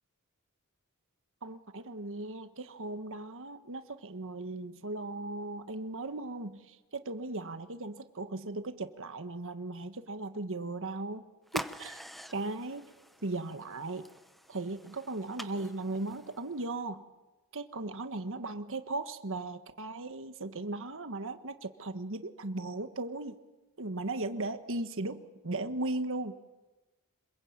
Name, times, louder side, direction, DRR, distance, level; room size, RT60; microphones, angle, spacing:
voice 1, 1.4-11.2 11.5-12.0 12.3-12.9 13.2-14.1 14.5-17.0 17.5-23.4 23.8-26.3, right 2 dB, 65° right, 8 dB, 1.5 m, -37 dB
sound 1, 11.5-16.7, equal, ahead, 0.9 m, -45 dB
27.0 x 22.0 x 8.9 m, 1.1 s
head